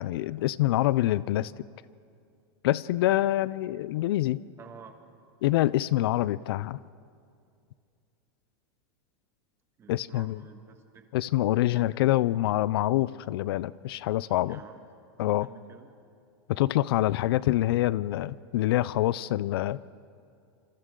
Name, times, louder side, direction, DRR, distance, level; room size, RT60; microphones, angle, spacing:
voice 1, 0.0-1.5 2.6-4.4 5.4-6.8 9.9-10.4 11.1-14.6 15.2-15.5 16.5-19.8, left 15 dB, 65° left, 19 dB, 0.4 m, -26 dB
voice 2, 4.6-4.9 9.8-11.1 11.5-11.9 14.5-14.8 15.4-15.9, right 6 dB, 20° right, 6 dB, 1.5 m, -50 dB
27.0 x 25.5 x 3.8 m, 2.4 s
supercardioid pair, 155°, 13 cm